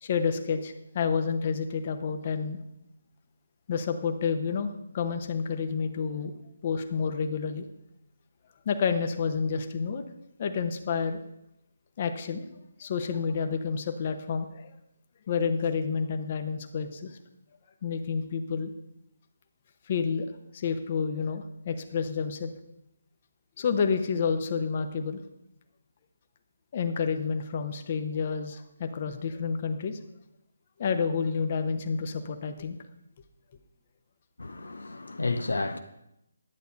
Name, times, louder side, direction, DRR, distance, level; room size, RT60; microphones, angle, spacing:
voice 1, 0.0-2.6 3.7-6.3 6.6-7.7 8.6-10.0 10.4-11.2 12.0-12.5 12.8-14.7 15.2-17.2 17.8-18.7 19.9-20.3 20.5-22.5 23.6-25.2 26.7-30.0 30.8-32.8, left 5 dB, 40° left, 1.0 m, -29 dB
voice 2, 34.4-35.8, left 3 dB, 75° left, 0.8 m, -31 dB
11.0 x 8.1 x 5.3 m
figure-of-eight pair, 145°, 0 cm